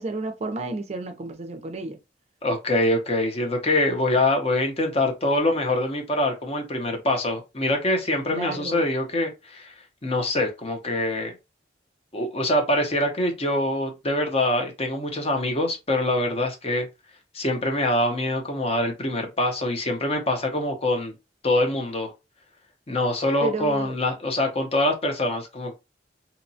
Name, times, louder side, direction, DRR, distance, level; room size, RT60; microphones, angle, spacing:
voice 1, 0.0-2.0 8.3-8.8 23.4-24.0, right 2 dB, 35° right, 0.5 m, -31 dB
voice 2, 2.4-9.7 10.0-11.3 12.1-16.9 17.3-21.1 21.4-22.1 22.9-25.7, left 1 dB, 35° left, 0.6 m, -24 dB
2.8 x 2.1 x 2.7 m
head